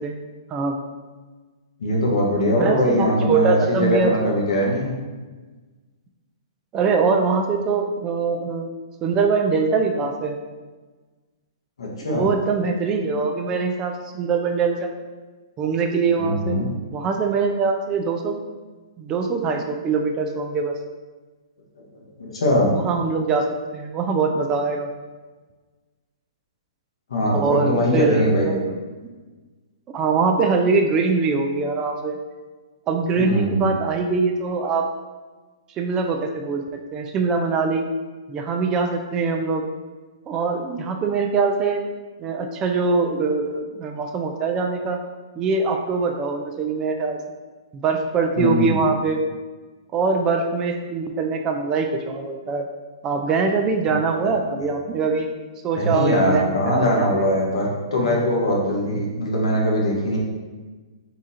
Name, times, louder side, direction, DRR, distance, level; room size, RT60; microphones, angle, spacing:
voice 1, 1.8-4.9 11.8-12.3 16.2-16.7 21.8-21.9 22.2-22.7 27.1-28.6 33.2-33.7 48.4-48.8 54.2-54.3 55.7-60.2, equal, 80° left, -2 dB, 1.2 m, -21 dB
voice 2, 2.6-4.1 6.7-8.7 9.0-10.4 12.1-14.9 15.6-16.6 16.9-18.4 19.0-20.8 22.8-23.5 23.7-24.9 27.3-28.7 29.9-32.2 32.9-34.9 35.8-36.6 36.9-37.9 38.3-39.6 40.3-41.8 42.2-45.0 45.4-47.2 47.7-49.2 49.9-52.7 53.0-55.3 55.6-57.1, right 4 dB, 20° right, 3 dB, 0.3 m, -23 dB
3.8 x 2.4 x 4.1 m, 1.3 s
hypercardioid pair, 140°, 3 cm